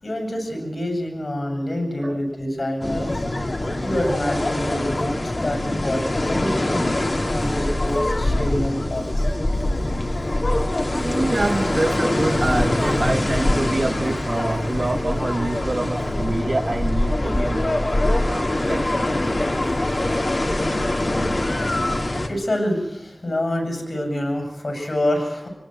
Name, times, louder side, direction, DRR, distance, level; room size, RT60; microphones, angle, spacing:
voice 1, 0.0-3.2 3.8-9.2 20.7-25.5, left 1 dB, 70° left, 3 dB, 7.3 m, -27 dB
sound 1, 2.8-22.3, left 1 dB, 55° left, 2.8 m, -23 dB
voice 2, 10.9-17.9 18.2-19.0 19.6-20.2, right 2 dB, 60° right, 6 dB, 2.2 m, -26 dB
25.5 x 18.5 x 7.8 m, 0.91 s
wide cardioid pair, 60°, 0 cm